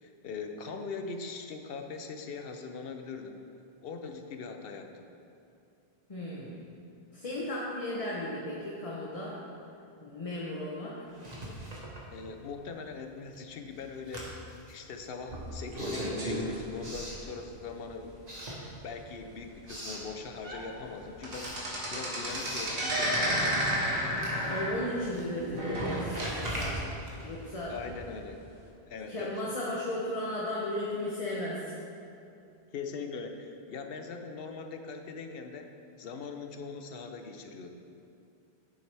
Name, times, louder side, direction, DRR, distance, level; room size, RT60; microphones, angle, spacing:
voice 1, 0.0-3.4 3.8-5.0 12.1-14.4 14.7-18.2 18.8-21.6 21.9-23.8 27.7-28.4 28.9-29.4 32.7-35.7 36.0-37.7, left 4 dB, 65° left, 5 dB, 0.9 m, -41 dB
voice 2, 6.1-6.6 7.1-9.4 10.0-11.0 24.5-27.8 28.1-28.2 29.1-31.8, left 1 dB, 35° left, -5 dB, 0.9 m, -35 dB
Writing, 11.1-12.7 13.0-17.8 18.2-19.2 19.4-20.1 20.5-28.2, right 1 dB, 40° right, 1.4 m, -42 dB
sound 1, 15.3-17.5 18.0-18.2 18.5-18.6 19.1-19.2 19.9-20.0 20.3-20.7 20.9-26.5 26.8-26.9 27.7-27.8, equal, 60° right, 1.5 m, -32 dB
9.2 x 7.3 x 3.4 m, 2.7 s
omnidirectional pair, 1.1 m